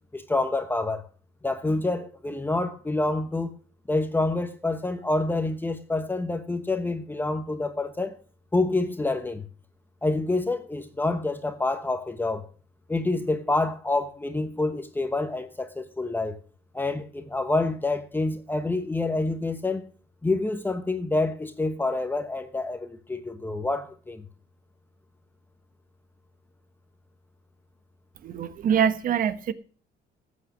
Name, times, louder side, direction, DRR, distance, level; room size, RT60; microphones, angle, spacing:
voice 1, 0.1-1.0 1.4-3.5 3.9-8.1 8.5-9.4 10.0-12.4 12.9-16.4 16.7-19.9 20.2-24.2, left 2 dB, 10° left, 1.1 m, -27 dB
voice 2, 28.2-29.5, right 8 dB, 55° right, 1.2 m, -24 dB
14.0 x 8.6 x 6.1 m
cardioid pair, 110°, 17 cm